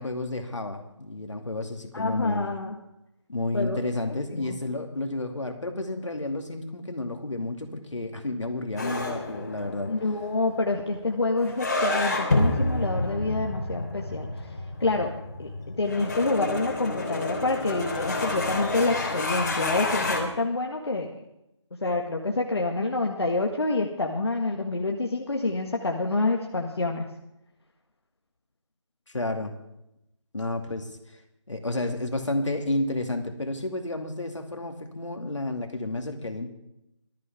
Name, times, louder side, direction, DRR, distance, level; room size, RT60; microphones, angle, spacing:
voice 1, 0.0-2.5 3.3-9.9 29.1-29.5 30.3-30.9 31.5-36.5, left 2 dB, 70° left, 4 dB, 2.5 m, -31 dB
voice 2, 1.9-2.8 3.5-3.8 4.3-4.6 9.9-14.5 14.8-15.1 15.4-21.2 21.8-27.1, left 2 dB, 55° left, 1 dB, 1.7 m, -27 dB
sound 1, 8.8-20.2, left 2 dB, 35° left, 3.1 m, -29 dB
19.0 x 13.5 x 3.6 m, 0.85 s
figure-of-eight pair, 170°, 16 cm